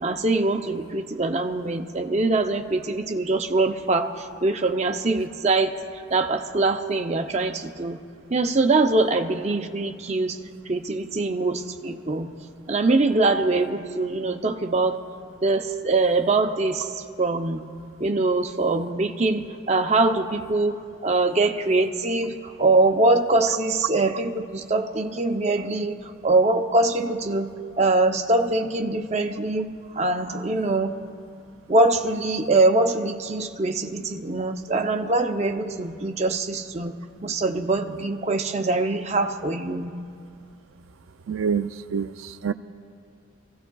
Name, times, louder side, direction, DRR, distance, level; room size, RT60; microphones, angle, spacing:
voice 1, 0.0-5.7 6.1-8.0 8.3-10.4 10.7-12.3 12.7-15.0 15.4-17.6 18.0-26.0 26.2-27.5 27.8-29.7 29.9-30.9 31.7-36.9 37.2-39.9, right 2 dB, 35° right, 5 dB, 0.6 m, -23 dB
voice 2, 41.3-42.5, right 6 dB, 85° right, 10 dB, 0.4 m, -27 dB
26.5 x 16.0 x 2.3 m, 2.3 s
head